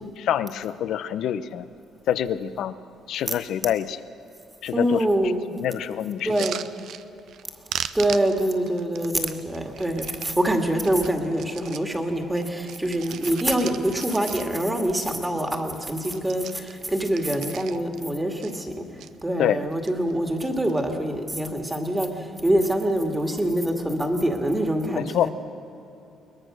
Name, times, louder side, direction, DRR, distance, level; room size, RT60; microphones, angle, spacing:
voice 1, 0.2-1.7 2.1-2.7 3.1-4.0 4.6-5.0 5.5-6.3 19.4-19.6 25.0-25.3, left 10 dB, 65° left, 13 dB, 0.8 m, -26 dB
voice 2, 4.7-5.4 6.2-6.6 7.9-18.9 19.2-25.3, right 1 dB, 10° right, 4 dB, 2.2 m, -25 dB
sound 1, 6.2-7.4 7.7-10.3 10.8-11.9 12.3-14.8 15.1-15.2 15.4-15.7 16.0-18.0 18.4-19.1 19.6-20.1 20.4-21.0 21.8-22.1, right 10 dB, 65° right, 0.7 m, -38 dB
22.5 x 20.0 x 6.4 m, 2.9 s
cardioid pair, 135°, 0 cm